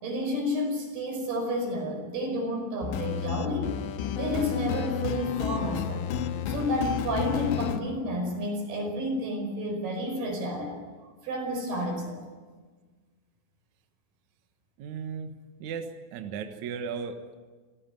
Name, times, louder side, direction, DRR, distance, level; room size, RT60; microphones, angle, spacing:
voice 1, 0.0-3.8 4.2-6.1 6.5-10.8 11.2-12.2, equal, 55° right, 4 dB, 6.9 m, -30 dB
sound 1, 2.8-7.8, left 8 dB, 75° left, 3.2 m, -31 dB
voice 2, 14.8-15.3 15.6-17.3, right 6 dB, 75° right, 7 dB, 1.7 m, -36 dB
27.5 x 16.0 x 9.2 m, 1.4 s
omnidirectional pair, 5.6 m